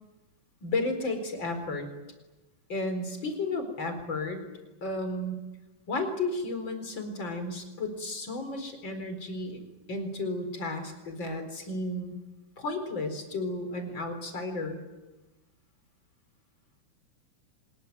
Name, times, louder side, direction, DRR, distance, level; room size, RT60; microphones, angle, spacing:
voice 1, 0.6-1.9 2.7-4.4 4.8-5.4 5.9-9.6 9.9-12.1 12.6-14.8, left 2 dB, 35° left, 7 dB, 4.8 m, -33 dB
25.5 x 21.5 x 9.6 m, 1.1 s
omnidirectional pair, 3.7 m